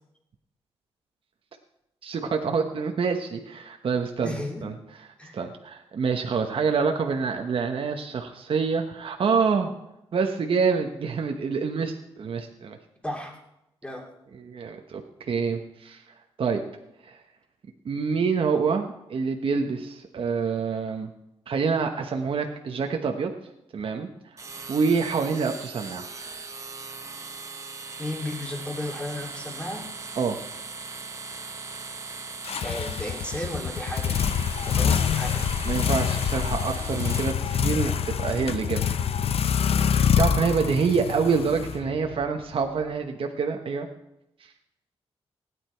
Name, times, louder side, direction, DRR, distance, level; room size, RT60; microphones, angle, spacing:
voice 1, 2.0-4.7 5.3-9.7 10.1-12.8 14.3-16.0 16.4-16.6 17.1-17.2 17.8-21.1 21.5-23.3 23.7-24.1 24.7-26.1 30.2-30.4 35.6-38.8 40.2-43.9, right 5 dB, 55° right, 3 dB, 1.0 m, -26 dB
voice 2, 4.2-4.7 5.2-5.3 13.0-13.3 13.8-14.1 28.0-29.8 32.6-34.2 34.7-35.5, left 1 dB, 10° left, 1 dB, 2.5 m, -34 dB
sound 1, 24.4-37.3, right 4 dB, 30° right, 1.1 m, -39 dB
sound 2, 32.4-42.2, left 8 dB, 65° left, 0.6 m, -26 dB
16.5 x 9.8 x 4.5 m, 0.87 s
wide cardioid pair, 115°, 11 cm